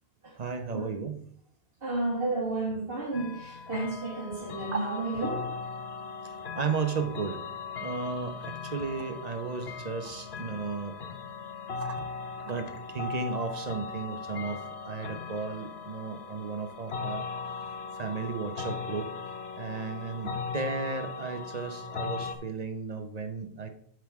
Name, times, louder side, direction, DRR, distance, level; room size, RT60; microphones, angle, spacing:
voice 1, 0.4-1.2 4.7-4.8 6.2-7.4 7.8-11.0 11.8-12.1 12.5-17.2 17.9-19.1 19.5-23.7, right 5 dB, 40° right, 7 dB, 0.8 m, -34 dB
voice 2, 1.8-5.5, right 2 dB, 60° right, -4 dB, 2.0 m, -32 dB
sound 1, 3.1-22.4, left 5 dB, 70° left, 1.1 m, -38 dB
9.2 x 6.3 x 3.5 m, 0.64 s
omnidirectional pair, 1.1 m